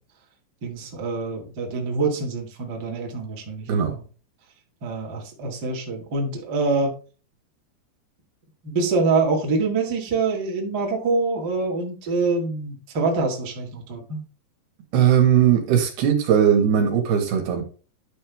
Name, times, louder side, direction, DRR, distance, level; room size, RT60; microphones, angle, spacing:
voice 1, 0.6-4.0 4.8-6.9 8.6-14.2, right 3 dB, 40° right, -1 dB, 1.5 m, -25 dB
voice 2, 14.9-17.6, right 9 dB, 65° right, 4 dB, 3.4 m, -19 dB
11.0 x 5.5 x 3.5 m, 0.37 s
omnidirectional pair, 5.1 m